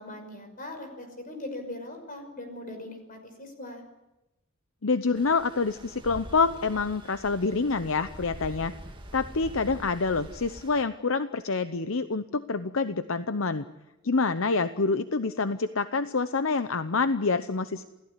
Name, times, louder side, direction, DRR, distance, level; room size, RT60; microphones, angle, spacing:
voice 1, 0.0-3.8, left 1 dB, 40° left, 6 dB, 5.8 m, -40 dB
voice 2, 4.8-8.7 9.1-13.6 14.0-17.8, left 4 dB, 70° left, 11 dB, 0.8 m, -27 dB
Stream, 5.1-10.8, right 1 dB, 25° right, 1.9 m, -44 dB
28.0 x 17.5 x 9.9 m, 0.99 s
head